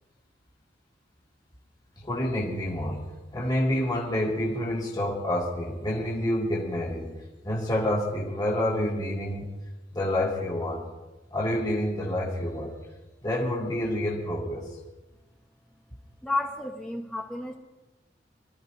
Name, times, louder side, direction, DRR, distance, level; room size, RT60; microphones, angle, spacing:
voice 1, 2.0-7.2 7.4-9.5 9.9-10.9 11.3-12.8 13.2-14.7, left 1 dB, 25° left, -5 dB, 2.2 m, -28 dB
voice 2, 16.2-17.5, left 2 dB, 5° left, 0 dB, 1.0 m, -31 dB
26.5 x 13.0 x 2.7 m, 1.1 s
head